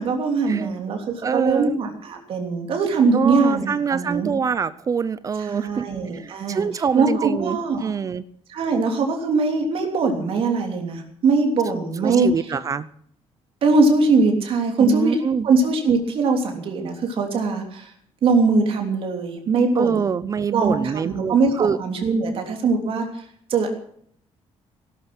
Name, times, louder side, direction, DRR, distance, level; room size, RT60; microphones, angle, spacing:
voice 1, 0.0-4.3 5.4-6.6 6.9-7.9 8.5-12.5 13.6-15.2 15.4-17.9 18.2-20.1 20.5-23.2 23.5-23.7, right 4 dB, 55° right, 3 dB, 3.3 m, -21 dB
voice 2, 1.2-1.8 3.1-5.9 6.1-8.2 12.0-12.9 14.8-15.5 19.8-21.8, right 6 dB, 30° right, 16 dB, 0.6 m, -25 dB
18.0 x 12.5 x 6.1 m, 0.64 s
cardioid pair, 165°, 11 cm